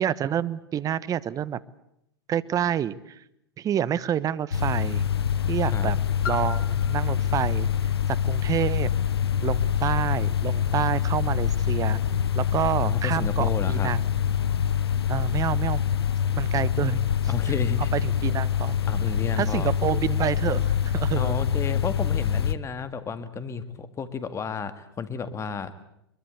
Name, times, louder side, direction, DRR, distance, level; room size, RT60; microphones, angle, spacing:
voice 1, 0.0-1.6 2.3-3.2 3.6-5.1 5.5-6.0 6.3-7.7 8.1-8.9 9.4-12.0 12.3-14.0 15.1-15.8 16.4-17.5 17.9-18.8 19.4-21.4, right 10 dB, 25° right, 19 dB, 1.0 m, -28 dB
sound 1, 4.5-22.5, left 8 dB, 85° left, 1.1 m, -25 dB
Piano, 6.2-11.7 12.4-12.5, left 6 dB, 70° left, 2.8 m, -43 dB
voice 2, 12.8-13.9 17.3-17.9 18.9-19.7 21.2-25.7, left 6 dB, 20° left, 12 dB, 2.0 m, -32 dB
23.0 x 22.5 x 8.1 m, 0.77 s
hypercardioid pair, 105°, 13 cm